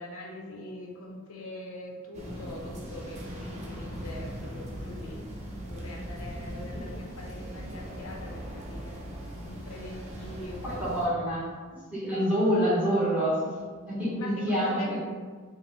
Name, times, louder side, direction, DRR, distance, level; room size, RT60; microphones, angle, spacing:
voice 1, 0.0-5.2 5.6-8.4 8.7-9.0 9.5-11.4 13.9-15.0, left 1 dB, 90° left, 0 dB, 0.7 m, -43 dB
sound 1, 2.1-11.1, equal, 35° right, 0.6 m, -39 dB
voice 2, 10.6-11.4 11.7-13.5 13.9-15.0, equal, 5° right, -9 dB, 1.3 m, -27 dB
4.9 x 2.1 x 3.2 m, 1.5 s
head